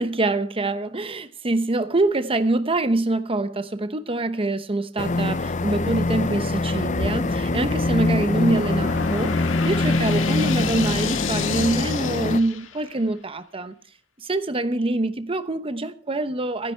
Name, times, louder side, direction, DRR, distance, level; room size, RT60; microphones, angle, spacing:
voice 1, 0.0-13.7 14.2-16.7, right 2 dB, 30° right, 0.9 m, -25 dB
sound 1, 5.0-12.4, left 2 dB, 40° left, 0.7 m, -24 dB
sound 2, 6.7-13.0, left 5 dB, 80° left, 1.9 m, -32 dB
27.5 x 10.0 x 4.5 m
head